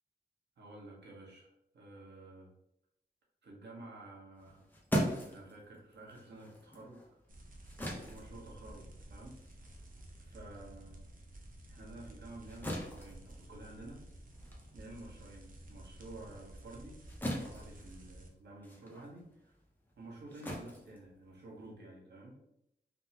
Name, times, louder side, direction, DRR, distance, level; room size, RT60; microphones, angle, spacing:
voice 1, 0.6-2.5 3.4-4.7 5.2-7.2 7.9-9.4 10.2-11.0 11.7-14.0 14.3-14.4 14.7-17.0 17.3-19.5 20.0-22.4, right 2 dB, 90° right, -2 dB, 0.9 m, -51 dB
sound 1, 4.4-11.2 11.5-21.7, equal, 10° left, 0.6 m, -41 dB
sound 2, 7.3-18.3, right 1 dB, 55° right, 0.5 m, -52 dB
3.5 x 2.0 x 2.7 m, 0.80 s
wide cardioid pair, 140°, 17 cm